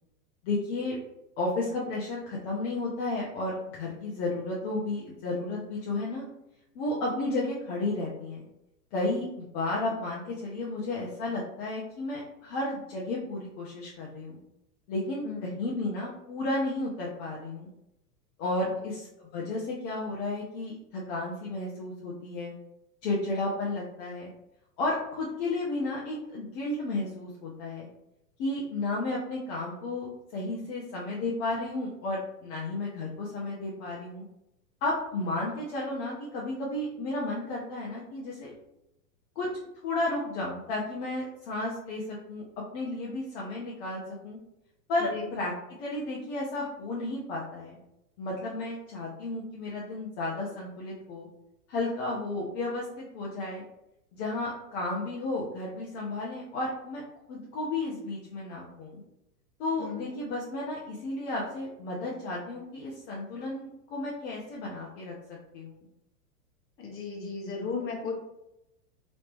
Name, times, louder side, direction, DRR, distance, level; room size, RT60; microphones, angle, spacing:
voice 1, 0.4-1.0 1.4-6.3 6.7-8.4 8.9-14.4 14.9-17.7 18.4-22.5 23.0-24.3 24.8-27.9 28.4-34.2 34.8-38.5 39.4-39.5 39.8-44.4 44.9-45.5 45.8-47.8 48.2-51.3 51.7-53.6 54.1-57.0 57.3-59.0 59.6-65.1 65.5-65.9, left 2 dB, 40° left, -4 dB, 0.9 m, -33 dB
voice 2, 66.8-68.1, left 5 dB, 25° left, -2 dB, 1.3 m, -35 dB
3.1 x 3.0 x 3.3 m, 0.87 s
hypercardioid pair, 110°, 47 cm